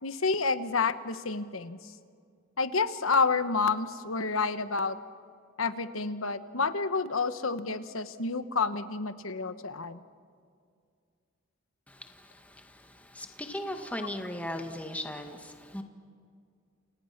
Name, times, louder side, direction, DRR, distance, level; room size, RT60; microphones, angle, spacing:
voice 1, 0.0-1.8 2.6-5.0 5.6-10.0, left 4 dB, 80° left, 11 dB, 1.3 m, -29 dB
voice 2, 11.9-15.8, left 1 dB, 5° left, 4 dB, 1.9 m, -38 dB
29.5 x 29.5 x 6.0 m, 2.2 s
head